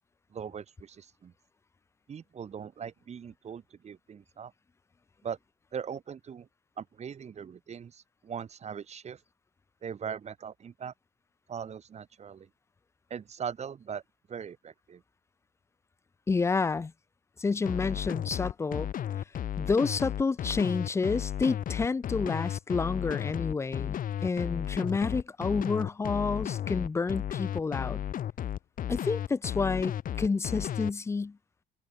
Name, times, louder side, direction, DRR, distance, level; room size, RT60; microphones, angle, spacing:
voice 1, 0.3-1.3 2.1-4.5 5.2-5.4 5.7-6.5 6.8-9.2 9.8-10.9 11.5-12.5 13.1-14.0 14.3-15.0, right 7 dB, 40° right, 4.1 m, -40 dB
voice 2, 16.3-16.9 17.4-18.9 19.6-28.0 28.9-31.4, left 4 dB, 15° left, 0.4 m, -29 dB
sound 1, 17.7-30.9, left 10 dB, 55° left, 2.5 m, -33 dB
cardioid pair, 110°, 17 cm